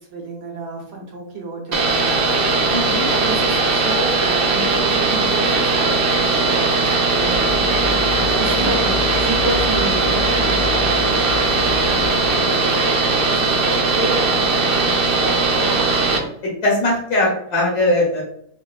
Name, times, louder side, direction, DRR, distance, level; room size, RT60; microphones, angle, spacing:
voice 1, 0.1-2.7 3.1-12.7 13.3-16.3, right 2 dB, 80° right, -2 dB, 1.7 m, -31 dB
sound 1, 1.7-16.2, right 3 dB, 60° right, 0.6 m, -19 dB
voice 2, 2.7-3.0 16.4-18.2, left 1 dB, 70° left, -4 dB, 1.5 m, -19 dB
sound 2, 7.2-12.3, left 6 dB, 85° left, 1.1 m, -30 dB
5.1 x 2.6 x 2.4 m, 0.69 s
omnidirectional pair, 1.7 m